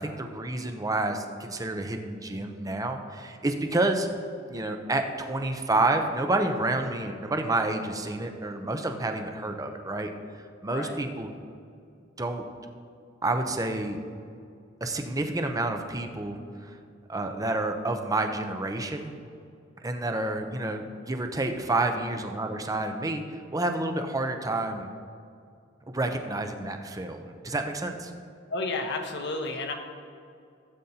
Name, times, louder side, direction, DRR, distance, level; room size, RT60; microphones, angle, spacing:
voice 1, 0.0-4.1 4.5-10.1 10.6-11.3 12.2-12.4 13.2-14.0 14.8-16.8 17.1-19.1 19.8-24.9 25.9-28.1, right 2 dB, 20° right, 5 dB, 0.7 m, -29 dB
voice 2, 10.7-11.0 28.5-29.7, left 2 dB, 60° left, 4 dB, 1.1 m, -31 dB
16.5 x 8.1 x 2.8 m, 2.4 s
head